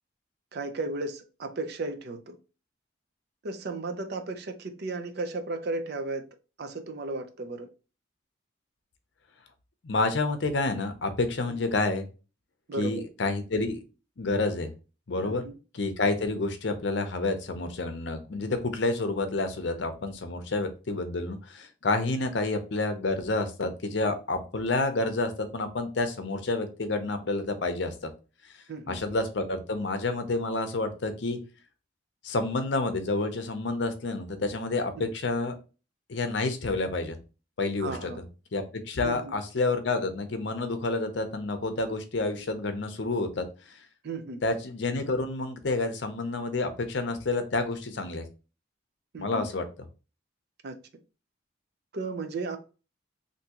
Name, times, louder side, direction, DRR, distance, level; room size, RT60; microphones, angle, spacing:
voice 1, 0.5-2.4 3.4-6.2 6.6-7.7 11.5-11.6 12.7-13.0 15.2-15.6 28.7-29.0 35.0-35.1 37.8-38.2 39.0-39.3 44.0-44.4 49.1-49.5 50.6-50.7 51.9-52.6, right 3 dB, 55° right, 0.4 m, -34 dB
voice 2, 9.8-12.1 12.8-13.8 14.2-14.7 15.1-15.4 15.7-27.9 28.9-31.4 32.2-35.5 36.1-37.2 37.6-38.1 38.5-43.5 44.4-48.2 49.2-49.6, left 3 dB, 60° left, 0.6 m, -29 dB
3.5 x 2.6 x 2.8 m
head